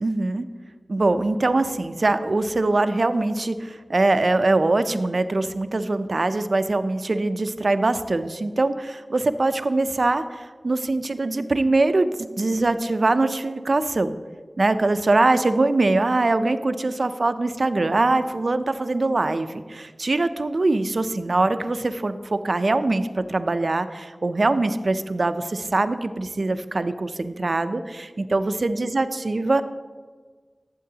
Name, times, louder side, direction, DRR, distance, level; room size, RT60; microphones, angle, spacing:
voice 1, 0.0-0.5 0.9-14.2 14.6-29.6, right 2 dB, 70° right, 10 dB, 0.4 m, -23 dB
12.5 x 7.6 x 2.8 m, 1.5 s
wide cardioid pair, 40°, 0 cm